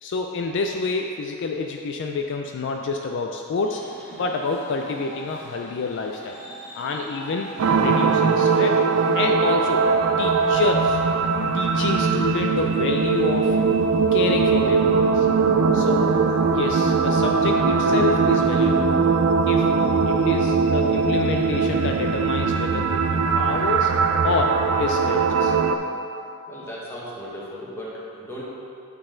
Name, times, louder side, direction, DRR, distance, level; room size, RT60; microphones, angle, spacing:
voice 1, 0.0-3.8 4.1-6.4 6.7-8.8 9.1-9.9 10.2-11.0 11.5-13.6 14.1-15.3 15.7-16.2 16.5-18.9 19.5-19.7 20.0-24.0 24.2-25.6, left 4 dB, 55° left, 3 dB, 0.3 m, -28 dB
sound 1, 3.6-11.2, left 1 dB, 35° left, 1.5 m, -43 dB
sound 2, 7.6-25.8, right 4 dB, 70° right, 0.4 m, -20 dB
voice 2, 16.1-16.4 26.5-28.4, equal, 10° left, -7 dB, 1.2 m, -37 dB
8.6 x 4.0 x 3.8 m, 2.6 s
head